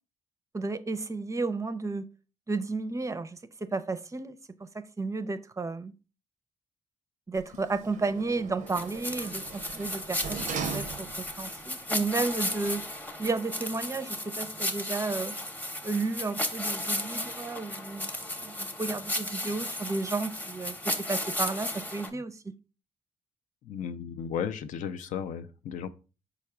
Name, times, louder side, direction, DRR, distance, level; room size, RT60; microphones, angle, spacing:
voice 1, 0.5-2.1 2.5-5.9 7.3-11.1 11.4-12.9 13.2-15.3 15.8-18.1 18.4-20.8 21.1-22.5, right 3 dB, 25° right, 0.4 m, -32 dB
Sliding door, 7.3-11.5 11.9-12.0, right 6 dB, 80° right, 0.5 m, -39 dB
sound 1, 8.7-22.1, left 1 dB, 15° left, 0.7 m, -34 dB
voice 2, 23.6-25.9, left 8 dB, 85° left, 0.4 m, -34 dB
4.7 x 2.2 x 4.7 m
cardioid pair, 75°, 13 cm